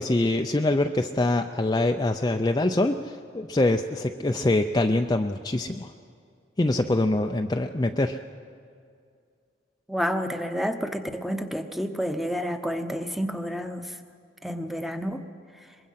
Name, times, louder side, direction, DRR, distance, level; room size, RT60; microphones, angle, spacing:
voice 1, 0.0-5.9 6.6-8.2, left 2 dB, 20° left, 5 dB, 0.5 m, -24 dB
voice 2, 9.9-13.9 14.4-15.2, equal, ahead, 7 dB, 0.9 m, -29 dB
23.5 x 21.0 x 5.7 m, 2.3 s
head